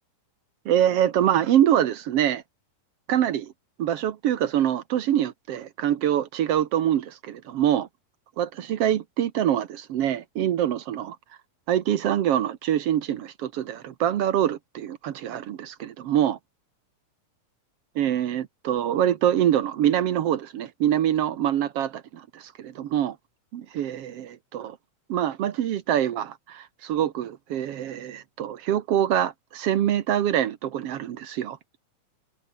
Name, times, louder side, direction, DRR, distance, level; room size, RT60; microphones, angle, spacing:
voice 1, 0.6-2.4 3.1-3.5 3.8-7.9 8.4-11.2 11.7-16.4 17.9-23.2 23.5-24.8 25.1-31.6, right 10 dB, 65° right, 1.7 m, -25 dB
omnidirectional pair, 3.8 m